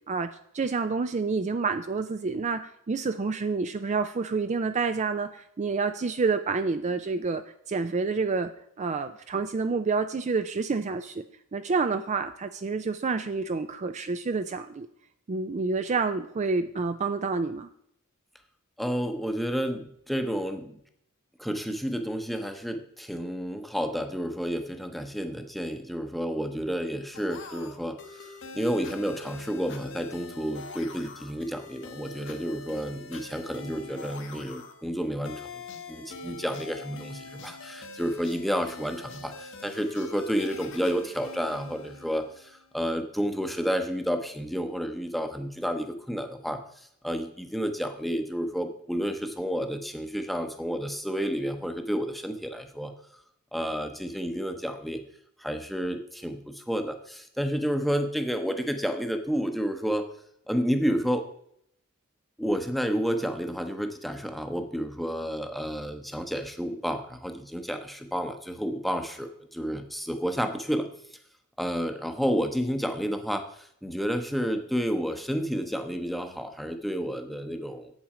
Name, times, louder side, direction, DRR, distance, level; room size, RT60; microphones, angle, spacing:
voice 1, 0.1-7.4 7.7-8.5 8.8-11.2 11.5-14.9 15.3-17.7, right 4 dB, 30° right, 9 dB, 0.4 m, -28 dB
voice 2, 18.8-20.8 21.4-35.6 35.9-46.6 47.0-52.9 53.5-55.0 55.4-60.1 60.5-61.3 62.4-70.9 71.6-77.9, equal, ahead, 6 dB, 0.8 m, -30 dB
sound 1, 27.1-42.6, left 3 dB, 60° left, 1.2 m, -44 dB
8.4 x 7.3 x 5.0 m, 0.69 s
head